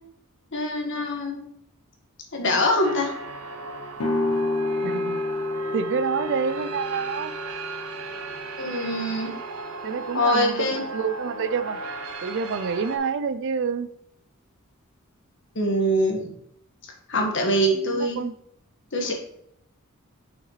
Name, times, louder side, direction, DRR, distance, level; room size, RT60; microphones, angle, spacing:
voice 1, 0.5-1.4 2.3-3.1 8.6-9.3 10.1-10.8 15.5-16.3 17.1-18.2 18.9-19.1, equal, 55° left, 2 dB, 1.5 m, -23 dB
sound 1, 2.8-13.0, right 3 dB, 80° right, 0.9 m, -36 dB
sound 2, 4.0-9.7, left 2 dB, 80° left, 0.9 m, -30 dB
voice 2, 4.8-5.2 5.7-7.3 9.8-10.7 10.9-11.8 12.2-13.9 17.9-18.3, right 6 dB, 55° right, 13 dB, 0.4 m, -27 dB
7.3 x 5.9 x 3.2 m, 0.74 s
head